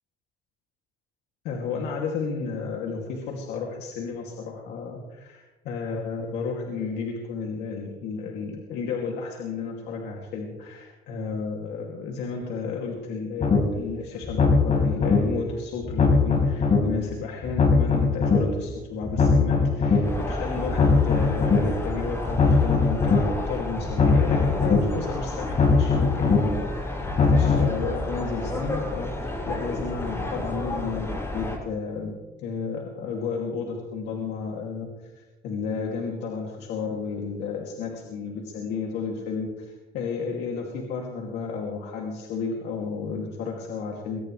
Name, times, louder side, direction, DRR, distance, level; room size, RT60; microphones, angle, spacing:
voice 1, 1.4-32.1 32.4-44.2, left 5 dB, 85° left, -1 dB, 2.6 m, -32 dB
sound 1, 13.4-13.6 14.2-15.2 15.8-16.8 17.4-18.4 19.0-20.0 20.6-21.6 22.2-23.2 23.8-24.8 25.4-26.4 27.0-27.7, left 5 dB, 45° left, 4.6 m, -20 dB
sound 2, 20.0-31.6, left 1 dB, 15° left, 6.3 m, -32 dB
22.5 x 18.5 x 3.3 m, 1.2 s
cardioid pair, 110°, 17 cm